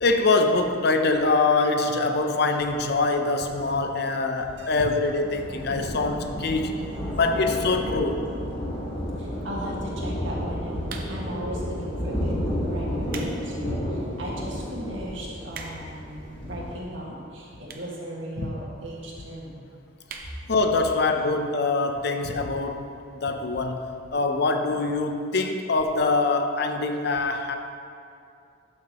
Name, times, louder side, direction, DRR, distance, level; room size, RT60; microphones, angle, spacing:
voice 1, 0.0-6.8 7.1-8.2 18.4-18.6 20.5-27.6, left 3 dB, 60° left, 6 dB, 0.6 m, -24 dB
Thunder, 4.5-16.8, equal, 30° left, 1.5 m, -32 dB
voice 2, 9.2-19.6, right 1 dB, 85° right, -4 dB, 1.8 m, -37 dB
sound 1, 10.8-11.4 12.1-12.3 12.8-13.4 13.8-13.9 14.5-14.6 14.8-14.9 15.1-16.0 16.8-16.9 17.6-18.0 18.3-18.4 18.6-18.7 18.9-19.0 19.3-19.5 20.0-20.3 20.7-20.8 21.0-21.1, right 5 dB, 50° right, 0.7 m, -40 dB
12.0 x 6.4 x 3.0 m, 2.5 s
head